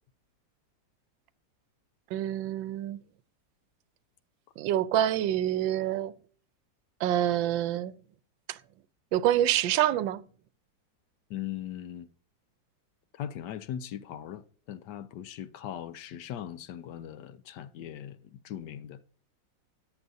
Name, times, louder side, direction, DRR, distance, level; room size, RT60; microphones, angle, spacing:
voice 1, 2.1-3.0 4.6-6.1 7.0-7.9 8.5-8.6 9.1-10.2, right 12 dB, 90° right, 1.3 m, -26 dB
voice 2, 11.3-12.1 13.2-14.4 14.7-19.0, left 10 dB, 75° left, 1.2 m, -39 dB
14.0 x 9.6 x 2.7 m
omnidirectional pair, 2.0 m